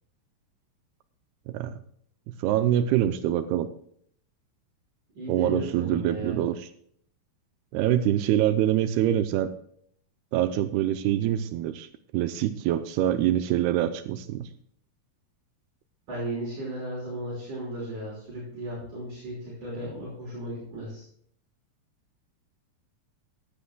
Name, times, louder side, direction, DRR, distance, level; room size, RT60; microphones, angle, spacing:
voice 1, 1.5-1.8 2.3-3.7 5.3-6.7 7.7-9.5 10.3-14.5, right 12 dB, 85° right, 11 dB, 2.6 m, -25 dB
voice 2, 5.1-6.4 16.1-21.0, right 1 dB, 50° right, -5 dB, 6.5 m, -35 dB
15.5 x 12.0 x 2.3 m, 0.64 s
omnidirectional pair, 4.6 m